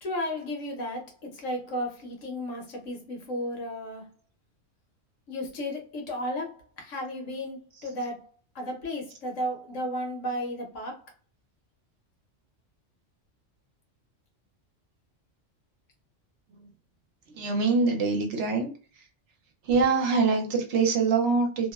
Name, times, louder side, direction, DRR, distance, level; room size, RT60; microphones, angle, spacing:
voice 1, 0.0-4.1 5.3-8.2 8.5-11.0, equal, 85° left, 1.2 m, -34 dB
voice 2, 17.3-18.7 19.6-21.7, right 4 dB, 70° right, 1.0 m, -24 dB
2.8 x 2.1 x 2.3 m
omnidirectional pair, 1.3 m